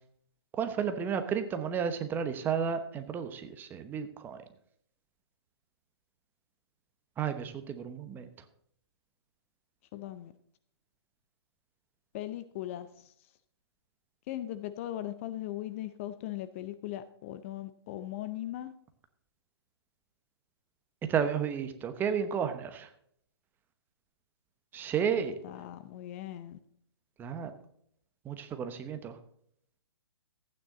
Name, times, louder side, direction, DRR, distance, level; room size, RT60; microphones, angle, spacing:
voice 1, 0.6-4.4 7.2-8.3 21.1-22.9 24.7-25.3 27.2-27.5 28.2-29.1, right 7 dB, 15° right, 0.9 m, -32 dB
voice 2, 9.9-10.3 12.1-13.1 14.3-18.7 25.1-26.6, left 13 dB, 30° left, 0.6 m, -39 dB
14.5 x 9.3 x 3.9 m
figure-of-eight pair, 135°, 14 cm